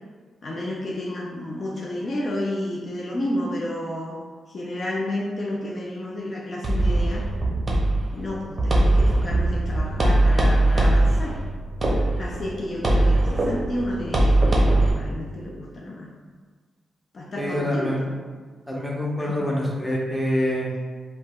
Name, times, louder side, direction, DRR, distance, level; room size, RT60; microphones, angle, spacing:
voice 1, 0.4-4.2 4.5-7.3 8.1-11.4 12.2-16.1 17.1-18.2 19.2-19.6, left 1 dB, 50° left, -3 dB, 0.4 m, -31 dB
sound 1, 6.6-14.9, right 1 dB, 45° right, 0.6 m, -21 dB
voice 2, 17.4-18.0 18.7-20.7, equal, 5° left, -4 dB, 0.8 m, -25 dB
3.2 x 2.1 x 2.3 m, 1.5 s
supercardioid pair, 45°, 0 cm